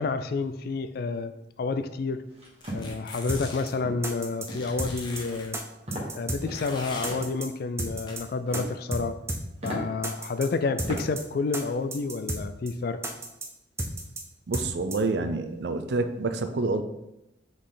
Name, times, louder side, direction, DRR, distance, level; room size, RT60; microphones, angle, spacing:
voice 1, 0.0-2.2 2.7-5.6 6.1-9.2 9.6-13.0, left 4 dB, 55° left, 10 dB, 0.3 m, -29 dB
sound 1, 2.3-2.9 3.4-3.6 3.8-4.1 4.5-4.8 5.1-5.5 5.9-6.1 6.4-7.3 8.2-8.8 9.2-9.3 9.6-9.8 10.4-10.5 10.8-11.0 11.4-11.8, right 1 dB, 35° right, 1.6 m, -37 dB
sound 2, 2.6-3.8 4.5-5.5 6.5-7.2 8.1-8.2, left 2 dB, 25° left, 0.9 m, -41 dB
sound 3, 3.3-3.4 3.7-3.8 4.0-4.5 4.8-5.2 5.5-5.6 5.9-6.4 6.7-6.8 7.0-7.5 7.8-8.2 8.5-8.6 8.9-9.0 9.3-9.4 9.7-9.8 10.0-10.5 10.8-11.2 11.5-11.6 11.9-12.4 12.7-12.8 13.0-13.5 13.8-14.2 14.5-14.7 14.9-15.0, right 1 dB, 15° right, 0.6 m, -32 dB
voice 2, 14.5-16.8, right 3 dB, 60° right, 9 dB, 0.5 m, -28 dB
6.4 x 4.1 x 3.8 m, 0.90 s
head